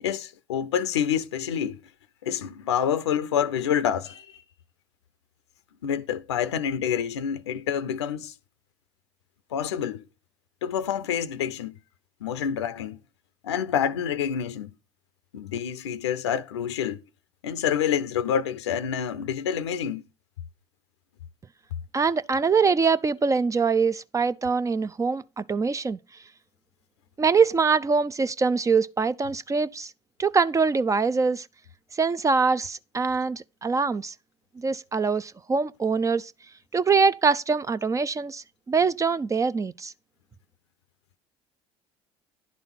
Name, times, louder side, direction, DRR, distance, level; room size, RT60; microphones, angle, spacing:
voice 1, 0.0-1.8 2.2-4.4 5.8-8.3 9.5-10.0 10.6-11.7 12.2-13.0 13.4-14.7 15.3-17.0 17.4-20.0, left 8 dB, 85° left, 0.6 m, -27 dB
voice 2, 21.9-26.0 27.2-29.9 30.2-31.5 31.9-34.1 34.6-36.3 36.7-39.9, right 5 dB, 25° right, 0.5 m, -23 dB
10.5 x 4.1 x 5.8 m
hypercardioid pair, 60°, 14 cm